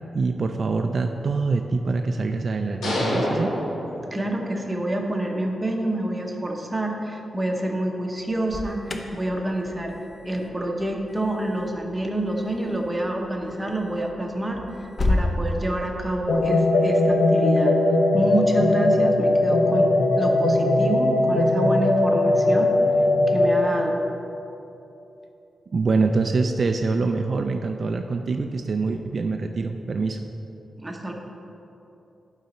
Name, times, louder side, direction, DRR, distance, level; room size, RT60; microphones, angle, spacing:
voice 1, 0.1-3.5 25.7-30.2, right 3 dB, 40° right, 4 dB, 0.3 m, -24 dB
sound 1, 2.8-4.6, left 1 dB, 90° left, 1.4 m, -27 dB
voice 2, 4.1-9.9 10.2-14.6 15.1-17.8 18.1-22.7 23.3-24.0 30.8-31.1, right 1 dB, 10° right, 1 dB, 0.8 m, -27 dB
Alarm, 8.2-15.3, left 2 dB, 30° left, 0.5 m, -32 dB
sound 2, 16.3-23.7, left 2 dB, 70° left, 0.9 m, -19 dB
12.0 x 4.0 x 4.3 m, 2.9 s
wide cardioid pair, 150°, 0 cm